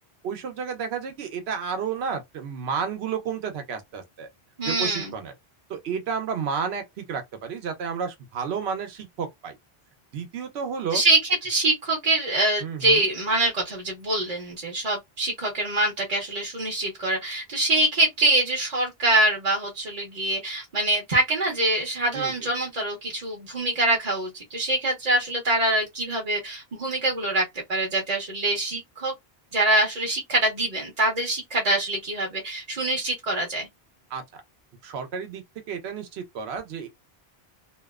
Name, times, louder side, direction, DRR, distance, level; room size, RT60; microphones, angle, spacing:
voice 1, 0.2-4.3 4.6-5.3 5.7-9.5 10.1-11.0 12.6-13.0 22.1-22.5 34.1-34.2 34.8-36.9, right 6 dB, 85° right, 0.9 m, -31 dB
voice 2, 4.6-5.1 10.9-29.1 29.5-33.7, right 2 dB, 45° right, 0.8 m, -24 dB
2.7 x 2.1 x 2.3 m
omnidirectional pair, 1.0 m